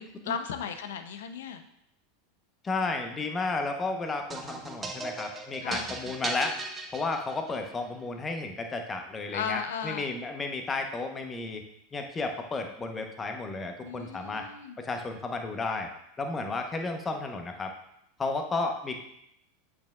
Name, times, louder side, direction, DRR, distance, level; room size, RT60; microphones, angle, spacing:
voice 1, 0.0-1.6 5.6-5.9 9.3-10.1 13.8-14.8, left 7 dB, 70° left, 8 dB, 0.6 m, -36 dB
voice 2, 2.6-6.6 6.9-11.6 11.9-14.4 14.8-15.9 16.2-17.7 18.2-19.0, left 3 dB, 20° left, 4 dB, 1.0 m, -33 dB
sound 1, 4.3-7.7, right 3 dB, 20° right, 1.1 m, -37 dB
8.5 x 6.1 x 2.4 m, 0.75 s
figure-of-eight pair, 85°, 0 cm